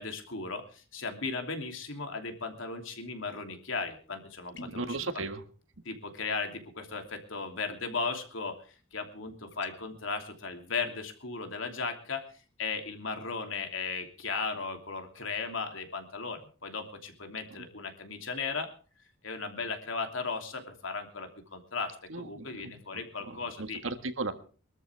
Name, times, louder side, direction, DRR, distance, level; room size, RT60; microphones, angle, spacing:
voice 1, 0.0-4.9 5.8-8.6 8.9-12.3 12.6-18.7 19.2-23.8, left 4 dB, 75° left, 5 dB, 3.0 m, -36 dB
sound 1, 4.5-4.9 9.5-9.8, left 2 dB, 60° left, 1.3 m, -47 dB
voice 2, 4.6-5.4 17.6-17.7 22.1-23.0 23.3-24.3, right 3 dB, 75° right, 8 dB, 1.7 m, -36 dB
23.0 x 13.0 x 3.4 m, 0.39 s
head